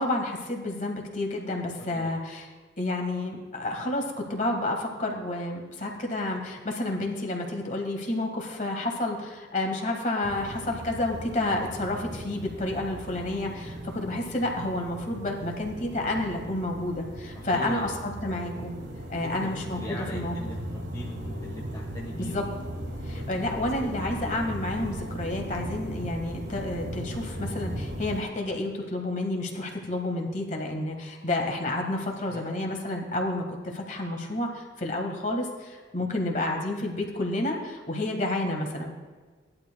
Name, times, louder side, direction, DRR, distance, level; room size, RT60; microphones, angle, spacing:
voice 1, 0.0-2.5 2.8-18.7 19.1-20.3 22.1-22.4 23.0-38.9, left 1 dB, 40° left, 2 dB, 1.6 m, -30 dB
voice 2, 1.8-2.2 13.9-14.2 17.3-17.8 19.2-19.5 19.7-22.5 23.1-23.3 23.9-24.0 32.3-32.4 36.0-36.1, left 1 dB, 20° left, -3 dB, 1.2 m, -41 dB
sound 1, 10.2-28.2, equal, 60° right, 1.5 m, -37 dB
17.0 x 11.5 x 2.3 m, 1.4 s
head